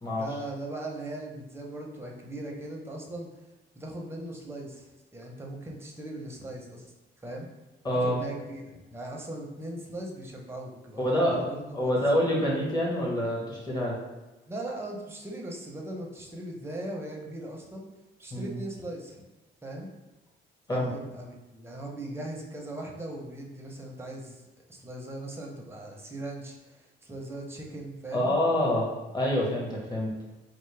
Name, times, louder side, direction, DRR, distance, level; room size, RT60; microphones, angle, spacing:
voice 1, 0.1-3.3 3.7-6.9 7.2-7.5 8.0-8.6 8.9-11.6 14.5-17.9 18.2-19.2 19.6-19.9 20.7-28.3, right 1 dB, 10° right, 0 dB, 0.7 m, -39 dB
voice 2, 7.8-8.2 11.0-11.5 11.7-13.9 18.3-18.6 20.7-20.9 28.1-28.9 29.1-30.1, left 1 dB, 20° left, -3 dB, 1.2 m, -26 dB
4.3 x 2.1 x 3.2 m, 1.1 s
cardioid pair, 90°, 20 cm